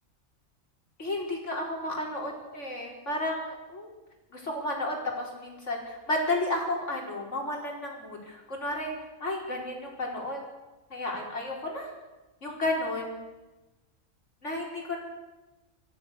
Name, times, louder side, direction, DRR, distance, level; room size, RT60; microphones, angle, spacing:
voice 1, 1.0-3.9 4.3-8.9 9.2-10.4 10.9-11.9 12.4-13.2 14.4-15.0, left 1 dB, 60° left, 0 dB, 5.0 m, -32 dB
24.5 x 15.5 x 6.8 m, 1.1 s
omnidirectional pair, 1.4 m